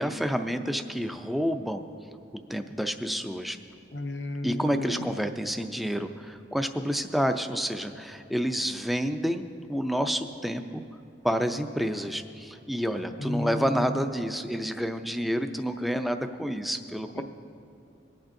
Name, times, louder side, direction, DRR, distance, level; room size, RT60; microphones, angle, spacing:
voice 1, 0.0-1.8 2.5-3.6 4.4-9.4 9.7-10.8 11.2-17.2, equal, ahead, 7 dB, 0.4 m, -29 dB
voice 2, 3.9-5.0 13.2-13.6 17.2-17.3, left 1 dB, 65° left, 6 dB, 0.6 m, -33 dB
23.5 x 8.7 x 2.6 m, 2.6 s
head